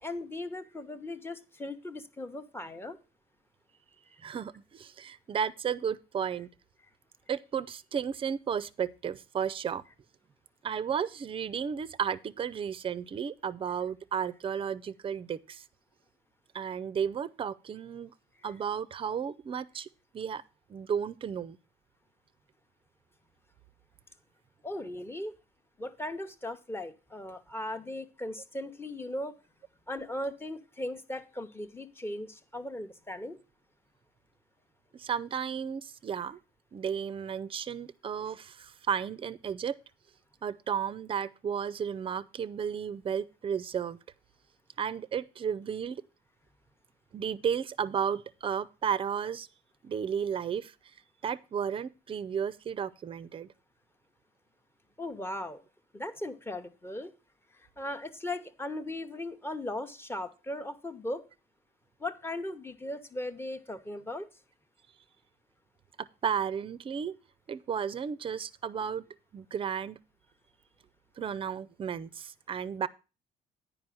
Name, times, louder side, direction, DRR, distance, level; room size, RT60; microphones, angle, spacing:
voice 1, 0.0-3.0 24.6-25.3 25.8-29.3 29.9-33.4 55.0-55.6 55.9-57.1 57.8-61.2 62.0-64.3, left 1 dB, 15° left, 0.9 m, -38 dB
voice 2, 4.2-6.5 7.3-9.8 10.6-15.6 16.5-18.1 18.4-19.9 20.1-20.4 20.7-21.6 34.9-36.4 36.7-39.8 40.4-44.0 44.8-46.0 47.1-49.5 49.8-50.7 51.2-53.5 66.2-67.1 67.5-69.0 69.3-70.0 71.2-72.9, right 7 dB, 30° right, 0.5 m, -33 dB
9.6 x 5.1 x 6.2 m
cardioid pair, 110°, 17 cm